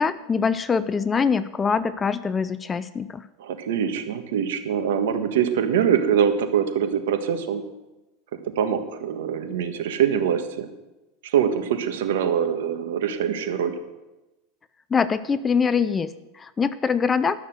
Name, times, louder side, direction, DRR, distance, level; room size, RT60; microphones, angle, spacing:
voice 1, 0.0-3.2 14.9-17.4, left 5 dB, 20° left, 15 dB, 0.4 m, -23 dB
voice 2, 3.4-7.6 8.3-10.7 11.2-13.8, right 8 dB, 85° right, 7 dB, 1.4 m, -24 dB
12.0 x 6.6 x 7.9 m, 1.0 s
supercardioid pair, 140°, 0 cm